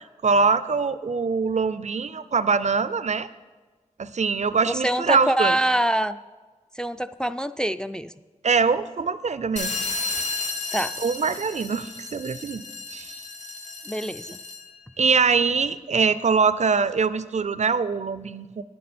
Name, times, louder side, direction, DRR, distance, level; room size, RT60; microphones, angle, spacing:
voice 1, 0.2-3.3 4.0-5.6 8.4-9.7 11.0-12.6 12.9-13.2 15.0-18.6, right 5 dB, 65° right, 15 dB, 0.4 m, -23 dB
voice 2, 4.7-6.2 6.8-8.1 10.7-10.9 13.9-14.4, right 1 dB, 5° left, 10 dB, 0.3 m, -25 dB
sound 1, 9.6-14.8, left 3 dB, 70° left, 0.9 m, -33 dB
10.0 x 8.5 x 4.2 m, 1.3 s
wide cardioid pair, 45°, 13 cm